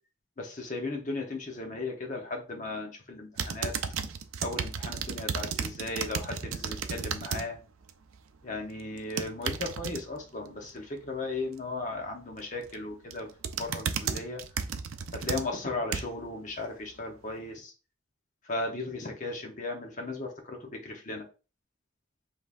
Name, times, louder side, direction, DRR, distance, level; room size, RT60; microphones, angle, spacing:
voice 1, 0.4-3.7 4.4-7.6 8.4-13.3 13.6-14.4 15.1-17.7 18.5-21.2, left 2 dB, 35° left, 2 dB, 0.9 m, -36 dB
sound 1, 3.4-7.5 7.8-8.2 9.0-10.0 12.4-12.7 13.1-16.3 16.8-16.9, right 6 dB, 90° right, 0.5 m, -33 dB
5.2 x 3.3 x 2.5 m, 0.34 s
head